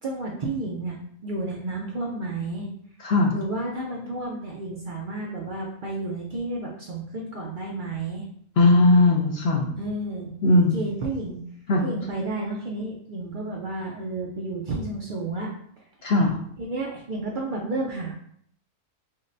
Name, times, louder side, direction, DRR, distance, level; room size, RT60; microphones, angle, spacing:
voice 1, 0.0-2.7 3.3-8.2 9.8-10.3 10.6-11.4 11.8-15.5 16.6-18.1, right 2 dB, 70° right, -2 dB, 0.4 m, -31 dB
voice 2, 3.0-3.3 8.6-9.7 10.4-10.8 11.7-11.8 16.0-16.4, left 2 dB, 60° left, -1 dB, 0.6 m, -18 dB
5.4 x 2.1 x 2.6 m, 0.64 s
omnidirectional pair, 1.6 m